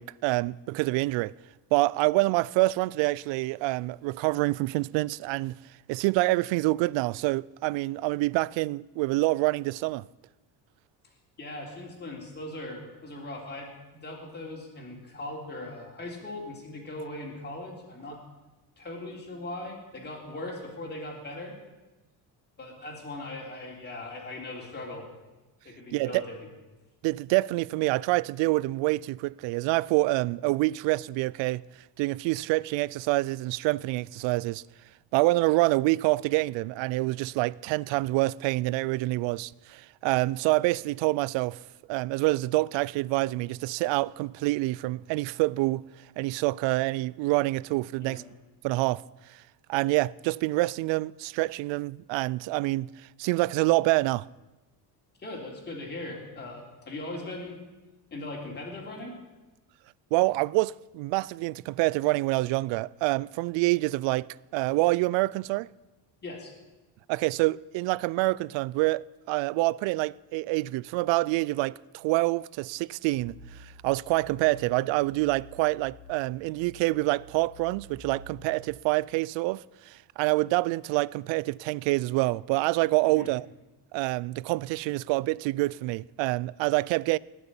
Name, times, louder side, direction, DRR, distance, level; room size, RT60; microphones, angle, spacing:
voice 1, 0.0-1.3 1.7-5.6 5.9-10.1 25.9-26.2 27.0-31.6 32.0-34.6 35.1-41.6 41.9-45.8 46.2-48.2 48.6-49.0 49.7-52.9 53.2-54.3 60.1-65.7 67.1-83.5 83.9-87.2, right 20 dB, 80° right, 0.5 m, -26 dB
voice 2, 11.4-18.2 18.8-21.6 22.6-25.0 25.6-26.4 48.0-48.2 55.2-57.6 58.1-59.2 66.2-66.5 83.1-83.3, left 2 dB, 25° left, 3.7 m, -39 dB
sound 1, 73.1-78.7, equal, 70° left, 2.2 m, -50 dB
19.5 x 6.9 x 9.9 m
cardioid pair, 150°, 44 cm